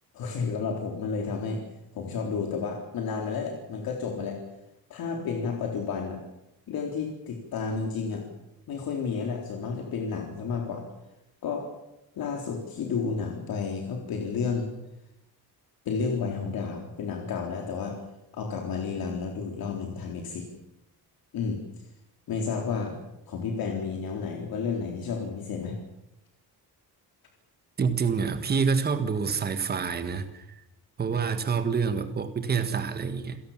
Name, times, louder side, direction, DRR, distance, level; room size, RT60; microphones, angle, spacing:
voice 1, 0.1-1.6 1.9-4.4 4.9-6.2 6.7-8.2 8.7-10.8 11.4-11.6 12.2-14.7 15.9-18.0 18.3-20.5 21.3-21.6 22.3-23.0 23.3-25.8, left 5 dB, 60° left, 2 dB, 3.9 m, -31 dB
voice 2, 27.8-30.4 31.0-33.4, right 5 dB, 25° right, 9 dB, 1.6 m, -27 dB
29.0 x 17.5 x 7.4 m, 0.89 s
cardioid pair, 180°, 39 cm